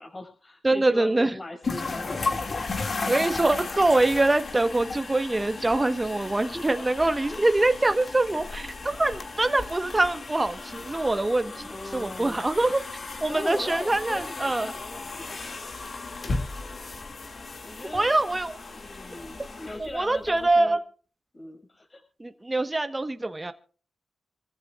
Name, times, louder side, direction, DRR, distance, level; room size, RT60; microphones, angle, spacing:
voice 1, 0.0-2.5 3.2-3.5 6.4-6.9 7.3-7.4 11.5-12.4 13.3-15.7 16.2-16.3 17.6-18.1 18.7-20.8 21.3-22.0, left 1 dB, 35° left, 3 dB, 6.2 m, -40 dB
voice 2, 0.6-1.3 3.1-11.6 11.9-12.8 13.2-14.7 17.9-18.6 19.8-20.8 22.2-23.5, right 2 dB, 25° right, 9 dB, 1.3 m, -24 dB
sound 1, 1.6-20.5, left 3 dB, 55° left, 2.3 m, -35 dB
26.0 x 15.0 x 2.5 m, 0.39 s
cardioid pair, 70°, 0 cm